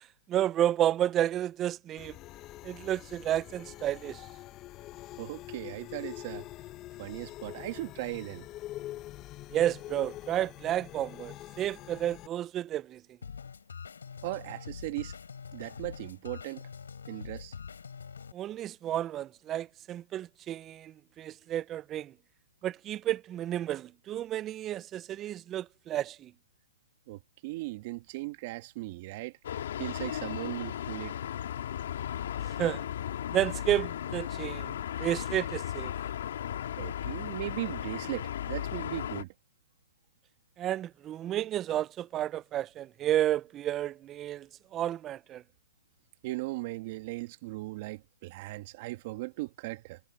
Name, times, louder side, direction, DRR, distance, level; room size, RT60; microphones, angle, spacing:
voice 1, 0.3-2.2 2.6-4.3 9.5-13.0 18.3-22.1 22.6-26.3 32.6-32.9 33.3-35.9 40.6-45.4, right 12 dB, 20° right, 0.4 m, -31 dB
sound 1, 2.0-12.3, left 15 dB, 25° left, 0.8 m, -45 dB
voice 2, 5.2-6.4 7.0-8.4 14.2-15.1 15.5-16.6 17.1-17.5 27.1-29.3 29.8-31.1 36.8-39.3 46.2-50.0, right 20 dB, 40° right, 1.6 m, -38 dB
sound 2, 13.2-18.3, left 6 dB, 90° left, 4.2 m, -44 dB
sound 3, 29.4-39.2, left 10 dB, 65° left, 2.4 m, -36 dB
hypercardioid pair, 145°, 0 cm